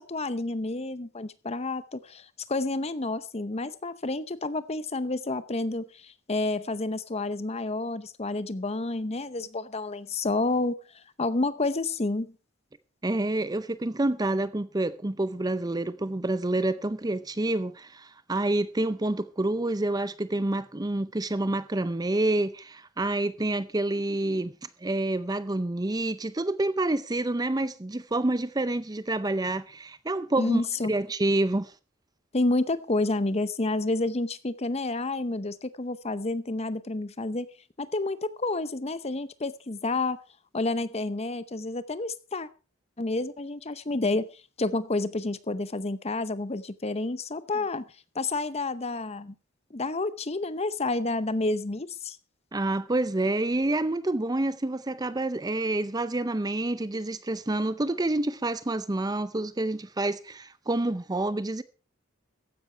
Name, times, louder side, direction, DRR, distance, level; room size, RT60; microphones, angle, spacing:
voice 1, 0.0-10.8 11.2-12.3 30.4-30.9 32.3-37.5 37.8-40.2 40.5-42.5 43.0-44.3 44.6-47.8 48.1-49.3 49.7-52.2, left 2 dB, 30° left, 0.8 m, -29 dB
voice 2, 13.0-31.7 52.5-61.6, right 2 dB, 20° right, 0.5 m, -28 dB
15.0 x 10.5 x 4.5 m
head